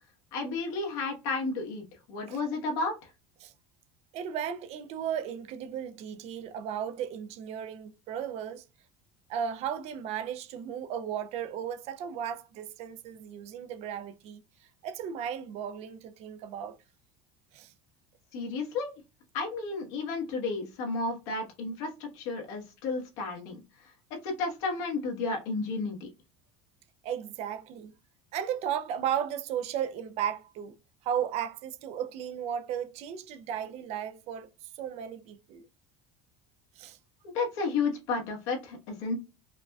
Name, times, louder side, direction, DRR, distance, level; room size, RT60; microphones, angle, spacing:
voice 1, 0.3-2.9 18.3-18.9 19.3-23.6 24.2-26.1 37.2-39.1, left 3 dB, 75° left, 1.2 m, -32 dB
voice 2, 4.1-8.6 9.3-14.4 14.8-16.8 17.5-17.7 27.0-27.9 28.3-30.8 31.0-34.5 34.8-35.7 36.8-37.0, right 9 dB, 45° right, 0.4 m, -35 dB
4.7 x 2.2 x 2.3 m
cardioid pair, 145°, 15 cm